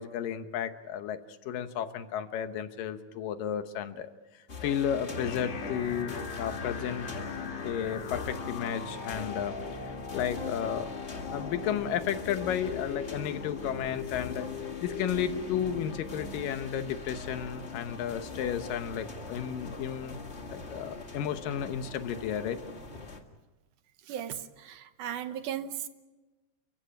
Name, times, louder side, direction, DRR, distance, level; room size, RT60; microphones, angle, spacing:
voice 1, 0.0-7.1 7.6-11.0 11.3-14.5 14.8-20.2 20.5-22.6, left 9 dB, 85° left, 10 dB, 2.8 m, -33 dB
sound 1, 4.5-23.2, left 3 dB, 35° left, 1.1 m, -42 dB
sound 2, 5.2-19.2, left 6 dB, 55° left, 3.2 m, -41 dB
voice 2, 24.1-25.9, right 10 dB, 70° right, 10 dB, 2.5 m, -36 dB
30.0 x 15.5 x 8.7 m, 1.2 s
omnidirectional pair, 3.8 m